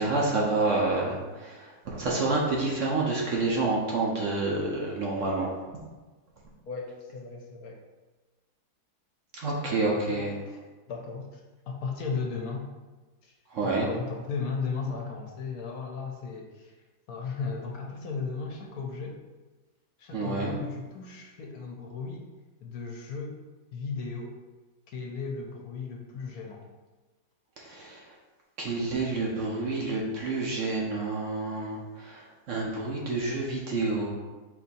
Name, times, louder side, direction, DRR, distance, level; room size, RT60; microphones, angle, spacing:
voice 1, 0.0-5.5 9.3-10.3 13.5-13.9 20.1-20.5 27.6-28.0 28.6-34.1, right 3 dB, 60° right, -2 dB, 1.0 m, -28 dB
voice 2, 6.7-7.8 9.9-10.6 10.9-11.4 11.7-12.7 13.2-13.3 13.6-16.7 17.1-19.2 20.0-22.2 22.6-23.3 23.7-24.3 24.9-26.6, left 4 dB, 70° left, 0 dB, 1.1 m, -36 dB
4.5 x 2.7 x 4.1 m, 1.3 s
omnidirectional pair, 1.7 m